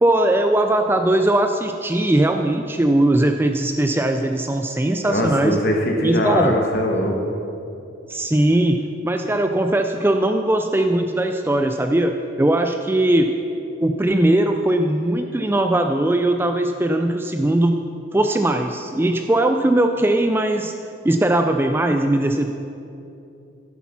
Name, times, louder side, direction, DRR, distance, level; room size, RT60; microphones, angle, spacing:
voice 1, 0.0-5.6 6.0-6.5 8.1-8.8 9.0-13.3 13.8-17.8 18.1-20.7 21.0-22.5, right 1 dB, 10° right, 5 dB, 0.3 m, -19 dB
voice 2, 5.0-7.2, left 1 dB, 50° left, 2 dB, 1.3 m, -21 dB
10.5 x 8.2 x 5.8 m, 2.7 s
head